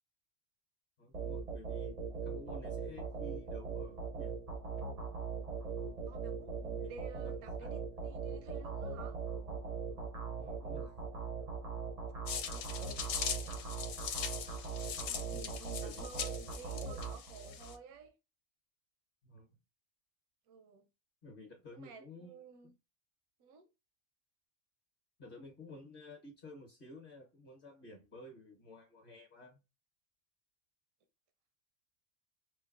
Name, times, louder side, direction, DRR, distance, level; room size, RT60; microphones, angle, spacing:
voice 1, 1.0-4.3 6.8-7.8 10.4-10.9 15.3-16.1 19.2-19.6 21.2-22.7 25.2-29.6, left 2 dB, 45° left, 0.9 m, -53 dB
sound 1, 1.1-17.8, right 5 dB, 55° right, 0.4 m, -40 dB
voice 2, 6.1-9.2 12.3-13.0 15.0-18.1 20.5-20.9 21.7-22.7 23.4-23.7, right 5 dB, 85° right, 1.1 m, -53 dB
sound 2, 12.3-17.8, left 8 dB, 75° left, 1.0 m, -41 dB
4.4 x 2.1 x 2.4 m
omnidirectional pair, 1.5 m